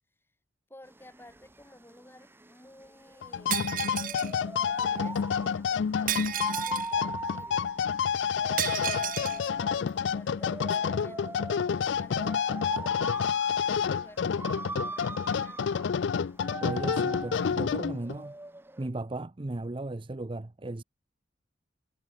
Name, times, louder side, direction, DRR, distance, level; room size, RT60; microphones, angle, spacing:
voice 1, 0.7-3.6 4.7-7.7 8.8-11.4 11.6-13.4 13.7-15.7, left 1 dB, 15° left, 4.5 m, -54 dB
sound 1, 0.9-18.9, right 2 dB, 15° right, 1.2 m, -41 dB
sound 2, 3.2-18.2, left 7 dB, 80° left, 0.4 m, -29 dB
Shatter, 3.5-4.3 6.1-6.9 8.6-9.4, right 12 dB, 50° right, 0.9 m, -32 dB
voice 2, 16.6-18.4 18.8-20.8, right 2 dB, 30° right, 0.6 m, -36 dB
head